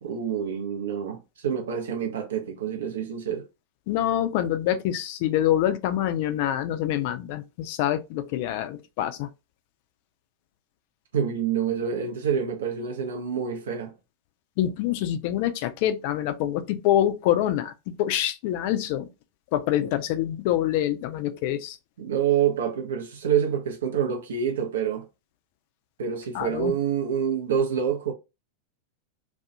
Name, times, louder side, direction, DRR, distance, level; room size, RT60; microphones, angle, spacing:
voice 1, 0.0-3.5 11.1-13.9 22.0-25.1 26.0-28.1, right 8 dB, 65° right, 0.5 m, -27 dB
voice 2, 3.9-9.3 14.6-19.1 19.5-21.8 26.3-26.7, left 12 dB, 45° left, 0.3 m, -26 dB
2.3 x 2.0 x 2.7 m
figure-of-eight pair, 90°, 0 cm